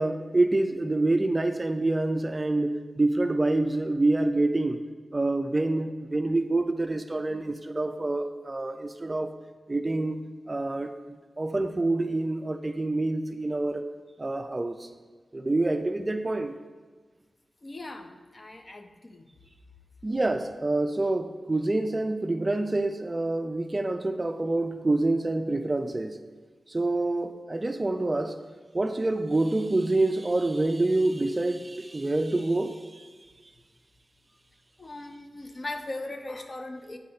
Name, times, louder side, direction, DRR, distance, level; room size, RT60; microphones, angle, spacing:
voice 1, 0.0-4.8 5.1-9.3 9.7-10.2 10.5-13.9 14.2-14.9 15.3-16.5 20.0-26.2 26.7-28.4 28.7-33.1, right 2 dB, 30° right, 0.3 m, -27 dB
voice 2, 17.6-19.2 34.8-37.0, left 2 dB, 35° left, 0.5 m, -39 dB
8.3 x 4.0 x 4.3 m
wide cardioid pair, 90°, 0 cm